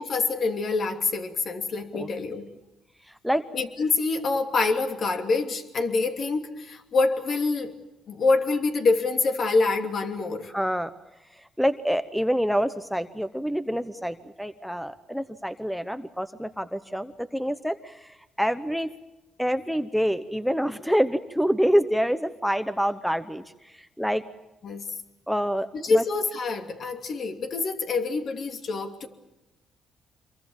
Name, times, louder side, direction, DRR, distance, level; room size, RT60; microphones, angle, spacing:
voice 1, 0.0-2.5 3.5-7.7 8.1-10.5 24.6-25.0 25.7-29.1, left 3 dB, 55° left, 5 dB, 2.8 m, -26 dB
voice 2, 10.5-10.9 11.6-18.9 19.4-23.4 24.0-24.2 25.3-26.0, equal, ahead, 12 dB, 0.9 m, -26 dB
26.0 x 23.0 x 7.3 m, 0.98 s
cardioid pair, 90°, 0 cm